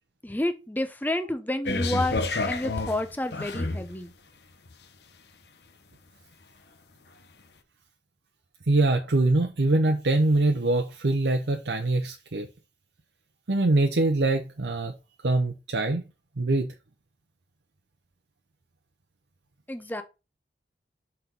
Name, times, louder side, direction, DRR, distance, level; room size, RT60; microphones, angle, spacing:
voice 1, 0.2-4.1 19.7-20.0, left 1 dB, 10° left, 0.7 m, -30 dB
sound 1, 1.7-3.9 4.7-4.8, left 2 dB, 70° left, 0.9 m, -29 dB
voice 2, 8.7-12.5 13.5-14.9 15.2-16.1 16.4-16.7, right 2 dB, 85° right, 0.8 m, -23 dB
5.9 x 4.4 x 5.3 m
head